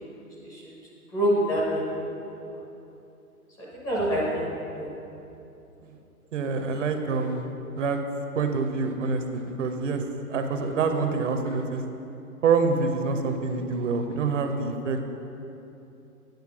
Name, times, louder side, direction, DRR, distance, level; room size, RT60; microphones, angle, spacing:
voice 1, 1.1-2.1 2.4-2.6 3.7-4.5 4.8-4.9, equal, 10° left, -7 dB, 0.5 m, -26 dB
voice 2, 6.3-7.5 7.7-8.0 8.4-11.8 12.4-15.0, right 4 dB, 50° right, 6 dB, 0.9 m, -26 dB
9.4 x 4.5 x 5.9 m, 2.9 s
hypercardioid pair, 135°, 45 cm